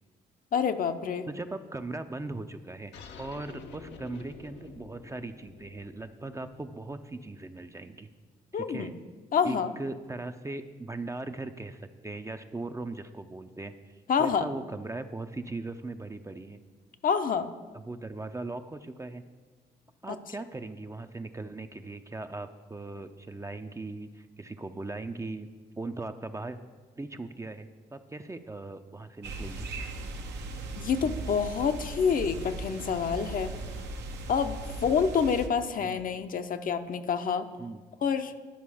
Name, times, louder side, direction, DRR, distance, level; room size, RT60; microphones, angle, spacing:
voice 1, 0.5-1.3 8.5-8.9 9.3-9.7 14.1-14.5 17.0-17.5 30.8-33.5 34.3-37.5 38.0-38.3, left 6 dB, 50° left, 8 dB, 0.7 m, -27 dB
voice 2, 1.3-2.9 3.2-8.1 8.5-8.9 9.4-16.6 17.7-19.2 20.0-25.5 25.8-26.6 27.0-29.7 35.8-36.0 37.6-37.8, right 2 dB, 15° right, 9 dB, 0.5 m, -39 dB
sound 1, 2.9-8.0, left 5 dB, 75° left, 0.9 m, -50 dB
sound 2, 29.2-35.5, right 2 dB, 70° right, 0.9 m, -38 dB
10.5 x 5.2 x 4.9 m, 1.4 s
supercardioid pair, 60°, 18 cm